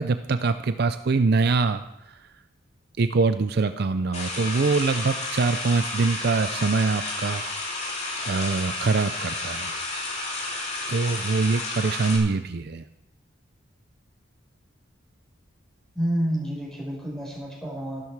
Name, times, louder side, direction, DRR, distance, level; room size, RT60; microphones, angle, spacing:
voice 1, 0.0-2.2 3.0-7.4 8.2-9.7 10.9-12.8, right 4 dB, 50° right, 10 dB, 0.5 m, -24 dB
sound 1, 4.1-12.2, left 2 dB, 30° left, 2.9 m, -31 dB
voice 2, 15.9-18.0, equal, 5° left, -3 dB, 4.8 m, -29 dB
14.0 x 12.5 x 4.7 m, 0.88 s
head